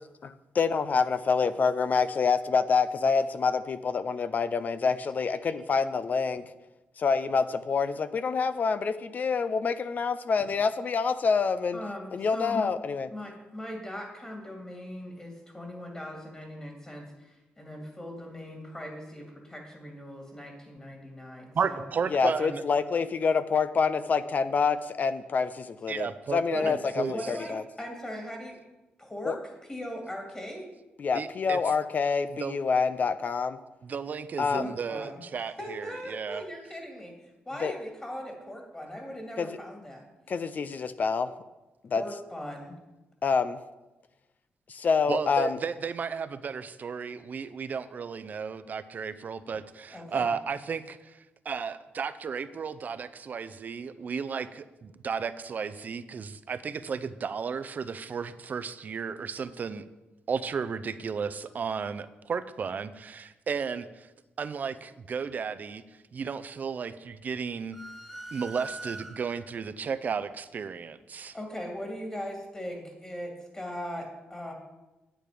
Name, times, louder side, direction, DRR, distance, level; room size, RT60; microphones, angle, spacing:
voice 1, 0.2-6.4 7.0-11.8 12.1-13.1 22.1-27.6 29.3-29.4 31.0-33.6 34.4-34.7 37.6-37.7 39.4-39.5 40.3-41.3 41.9-42.0 43.2-43.6 44.7-45.6, left 5 dB, 45° left, 13 dB, 0.5 m, -27 dB
voice 2, 11.7-12.7 13.1-21.9 22.4-22.5 26.5-26.7 27.1-28.6 29.0-29.4 29.7-30.6 34.5-35.2 35.6-40.0 41.9-42.7 49.9-50.3 71.3-74.5, equal, 20° left, 1 dB, 2.3 m, -40 dB
voice 3, 21.5-22.6 25.9-27.3 31.1-31.6 32.4-32.6 33.8-36.4 45.1-51.2 51.5-59.8 60.3-64.1 64.4-65.8 66.1-67.8 68.3-71.4, right 6 dB, 45° right, 13 dB, 0.5 m, -34 dB
sound 1, 67.7-69.5, right 2 dB, ahead, 1.3 m, -42 dB
9.2 x 8.8 x 5.0 m, 1.0 s
cardioid pair, 100°, 4 cm